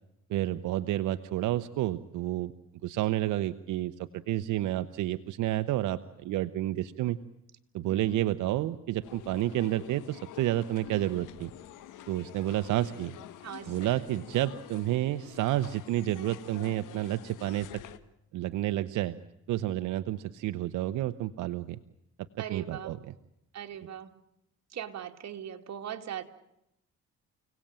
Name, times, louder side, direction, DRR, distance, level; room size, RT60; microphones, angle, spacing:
voice 1, 0.3-2.5 2.8-7.2 7.7-11.5 12.1-13.2 13.7-17.7 18.3-19.1 19.5-21.8 22.5-23.0, right 14 dB, 90° right, 11 dB, 0.9 m, -30 dB
voice 2, 7.9-8.2 13.4-14.0 22.4-23.0 23.5-24.2 24.7-26.2, right 9 dB, 60° right, 5 dB, 2.5 m, -40 dB
sound 1, 9.0-18.0, left 12 dB, 90° left, 1.7 m, -48 dB
29.5 x 18.0 x 9.0 m, 0.85 s
cardioid pair, 90°, 30 cm